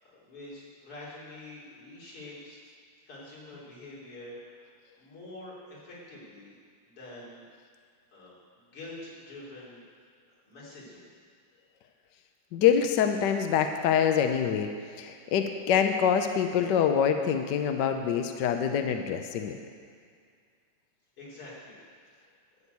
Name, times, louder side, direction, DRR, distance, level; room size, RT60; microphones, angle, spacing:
voice 1, 0.0-2.6 3.1-4.7 5.0-6.5 6.8-7.4 8.1-9.8 10.4-11.1 21.2-21.8 22.1-22.2, left 2 dB, 85° left, -7 dB, 4.2 m, -46 dB
voice 2, 12.5-14.7 15.0-19.6, left 8 dB, 65° left, 6 dB, 1.2 m, -25 dB
12.5 x 6.3 x 8.2 m, 2.1 s
omnidirectional pair, 2.4 m